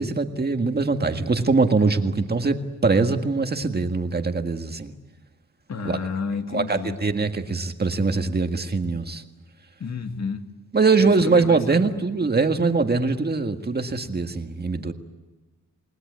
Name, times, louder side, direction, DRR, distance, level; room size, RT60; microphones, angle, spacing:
voice 1, 0.0-4.9 5.8-6.0 6.5-9.2 10.7-14.9, right 4 dB, 30° right, 1.8 m, -22 dB
voice 2, 5.7-7.0 9.8-10.5 11.0-12.0, left 5 dB, 55° left, 2.2 m, -31 dB
29.0 x 19.5 x 9.5 m
wide cardioid pair, 115°, 32 cm